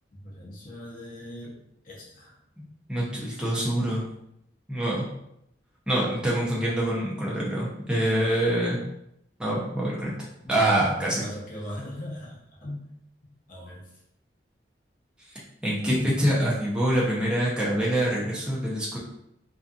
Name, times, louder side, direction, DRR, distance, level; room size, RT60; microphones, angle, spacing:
voice 1, 0.2-1.5 1.8-2.3 10.4-12.8 13.5-13.8, left 1 dB, 50° left, -4 dB, 0.7 m, -38 dB
voice 2, 2.9-4.1 4.7-5.1 5.9-8.8 9.4-11.3 15.6-19.0, right 1 dB, 5° right, -6 dB, 0.6 m, -25 dB
2.6 x 2.4 x 2.3 m, 0.80 s
head